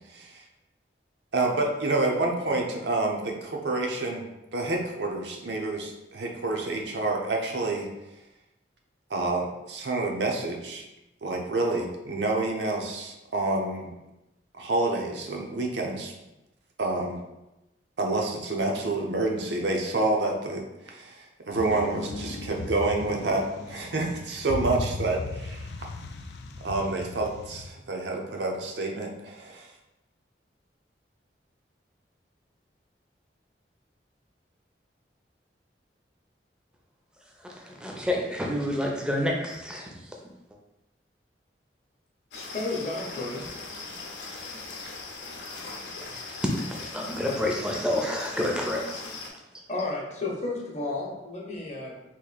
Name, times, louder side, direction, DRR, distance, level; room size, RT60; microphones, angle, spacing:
voice 1, 0.1-0.4 1.3-7.9 9.1-10.8 11.2-13.9 14.6-16.1 16.8-17.2 18.0-25.7 26.6-29.7, right 2 dB, 75° right, 1 dB, 0.6 m, -28 dB
sound 1, 21.5-27.7, left 3 dB, 65° left, 0.3 m, -37 dB
voice 2, 37.4-40.2 46.1-49.1, left 1 dB, 5° right, 0 dB, 0.5 m, -29 dB
sound 2, 42.3-49.3, left 3 dB, 85° left, 0.7 m, -39 dB
voice 3, 42.3-43.5 49.7-52.0, left 2 dB, 40° left, -2 dB, 0.8 m, -32 dB
3.0 x 2.5 x 4.0 m, 0.95 s
head